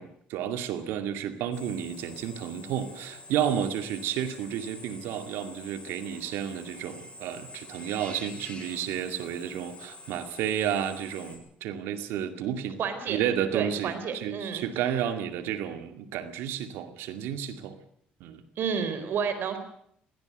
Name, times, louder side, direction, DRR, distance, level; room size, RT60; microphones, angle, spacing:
voice 1, 0.0-12.8 13.1-17.8 18.2-18.4, right 9 dB, 80° right, 8 dB, 2.3 m, -31 dB
Drill, 1.5-11.4, left 2 dB, 30° left, 7.8 m, -47 dB
voice 2, 12.8-13.2 13.5-14.9 18.6-19.6, right 6 dB, 65° right, 10 dB, 4.4 m, -31 dB
21.5 x 17.5 x 8.1 m, 0.66 s
supercardioid pair, 65°, 4 cm